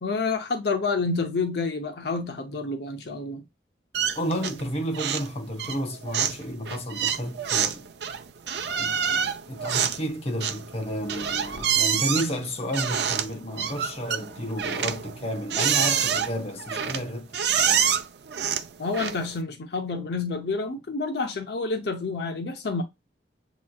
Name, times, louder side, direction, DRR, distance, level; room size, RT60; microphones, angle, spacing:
voice 1, 0.0-3.4 18.8-22.8, left 4 dB, 65° left, 0.7 m, -28 dB
sound 1, 3.9-4.7 4.9-5.3 5.6-19.4, right 8 dB, 65° right, 0.6 m, -27 dB
voice 2, 4.1-7.9 8.8-17.3 17.6-17.9, equal, 35° left, 1.0 m, -31 dB
7.3 x 3.1 x 2.3 m
head